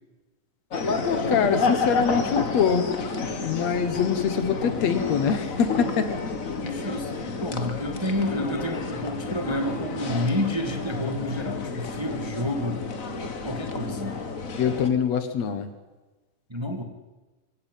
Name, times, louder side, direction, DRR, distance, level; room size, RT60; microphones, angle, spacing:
sound 1, 0.7-14.9, left 4 dB, 35° left, 1.6 m, -30 dB
voice 1, 1.0-2.9 3.4-6.1 14.6-15.7, left 7 dB, 65° left, 10 dB, 2.6 m, -24 dB
voice 2, 6.6-12.8 13.4-14.2 16.5-16.8, left 1 dB, 10° right, 5 dB, 1.8 m, -29 dB
24.0 x 16.5 x 9.3 m, 1.2 s
omnidirectional pair, 3.3 m